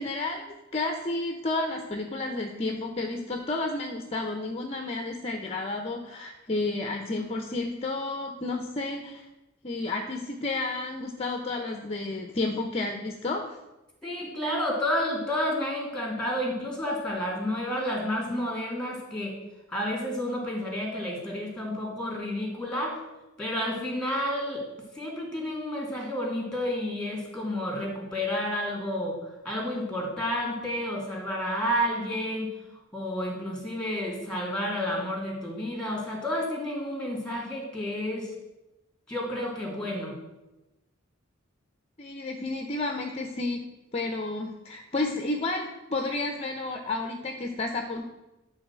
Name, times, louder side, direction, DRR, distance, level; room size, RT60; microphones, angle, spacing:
voice 1, 0.0-9.3 9.6-13.4 42.0-43.6 43.9-48.0, left 2 dB, 30° left, 4 dB, 0.7 m, -31 dB
voice 2, 14.0-19.3 19.7-23.0 23.4-24.6 24.9-29.2 29.4-32.5 32.9-38.3 39.1-40.2, left 1 dB, 5° left, -1 dB, 2.7 m, -30 dB
11.5 x 4.1 x 7.3 m, 1.0 s
head